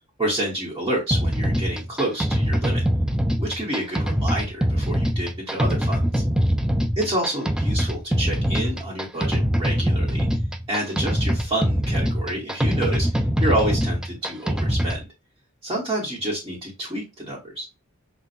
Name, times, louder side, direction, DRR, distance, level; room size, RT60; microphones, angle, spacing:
voice 1, 0.2-2.8 3.4-6.2 7.0-10.3 10.7-13.1 13.4-15.1 15.6-17.7, right 1 dB, 20° right, -5 dB, 1.2 m, -28 dB
sound 1, 1.1-15.0, equal, 5° right, 0.3 m, -23 dB
5.7 x 2.4 x 2.6 m, 0.25 s
head